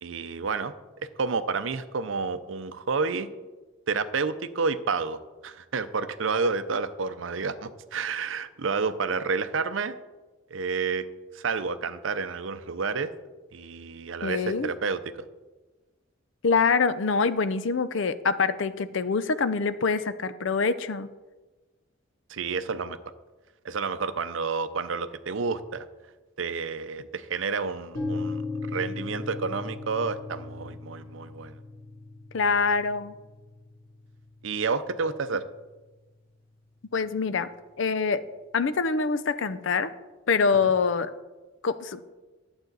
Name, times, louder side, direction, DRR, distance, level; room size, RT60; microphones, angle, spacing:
voice 1, 0.0-0.7 1.2-3.3 3.9-5.2 5.4-9.9 10.5-11.0 11.3-13.1 13.5-15.0 22.3-23.0 23.6-25.9 26.4-28.4 28.7-31.5 34.4-35.4 40.6-40.7, right 4 dB, 70° right, 12 dB, 0.6 m, -30 dB
voice 2, 14.2-14.7 16.4-21.1 32.3-33.1 36.9-37.5 37.8-38.2 38.5-39.9 40.3-41.1 41.6-42.0, left 5 dB, 65° left, 13 dB, 0.5 m, -25 dB
sound 1, 27.9-35.8, left 3 dB, 45° left, 2.9 m, -38 dB
11.5 x 7.9 x 4.0 m, 1.2 s
head